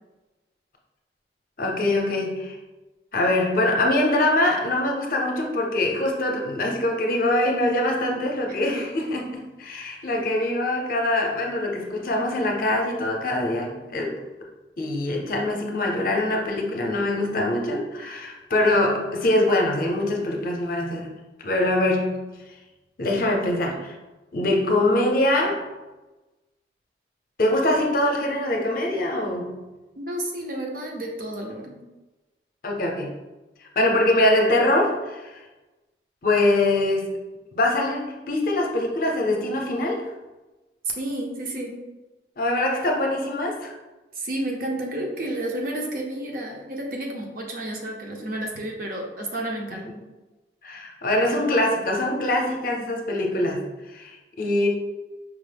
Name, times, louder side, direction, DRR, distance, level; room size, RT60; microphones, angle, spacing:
voice 1, 1.6-2.6 3.1-14.1 14.8-21.1 21.4-22.3 23.0-23.9 24.3-25.6 27.4-29.7 32.6-33.1 33.8-35.4 36.2-37.2 37.5-40.0 42.4-43.7 49.7-49.8 50.6-54.7, left 1 dB, 50° left, 1 dB, 0.6 m, -23 dB
voice 2, 30.0-31.8 41.0-41.8 44.1-49.8, right 1 dB, 50° right, 0 dB, 0.6 m, -31 dB
4.8 x 2.1 x 3.3 m, 1.1 s
head